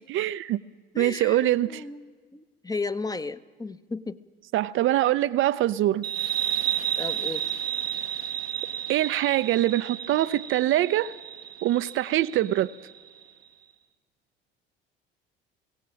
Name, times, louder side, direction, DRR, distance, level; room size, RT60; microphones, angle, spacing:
voice 1, 0.1-0.6 1.0-1.8 4.5-6.1 8.9-11.1 11.6-12.7, right 14 dB, 45° right, 0.5 m, -24 dB
voice 2, 0.9-4.2 7.0-7.4, left 3 dB, 15° left, 0.8 m, -34 dB
sound 1, 6.0-13.2, right 10 dB, 90° right, 1.0 m, -32 dB
24.0 x 17.5 x 7.5 m
figure-of-eight pair, 60°, 29 cm